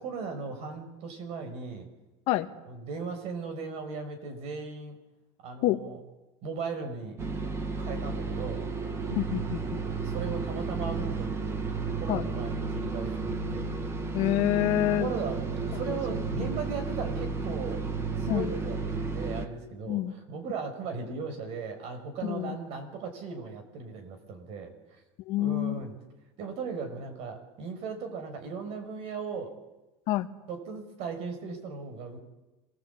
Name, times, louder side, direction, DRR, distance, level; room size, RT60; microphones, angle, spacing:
voice 1, 0.0-1.9 2.7-5.0 5.4-6.0 6.4-7.2 7.8-8.7 10.0-11.6 12.0-13.7 14.9-17.8 18.2-25.0 25.4-25.9 26.4-29.6 30.5-32.2, right 5 dB, 55° right, 6 dB, 6.0 m, -37 dB
sound 1, 7.2-19.5, right 4 dB, 20° right, 1.8 m, -32 dB
voice 2, 9.1-9.8 12.1-12.3 14.1-15.1 15.9-16.0 16.4-16.5 18.3-18.5 19.9-20.1 22.2-22.6 25.3-25.8 30.1-30.3, left 15 dB, 55° left, 8 dB, 1.5 m, -27 dB
26.5 x 20.0 x 8.7 m, 1.1 s
cardioid pair, 155°, 13 cm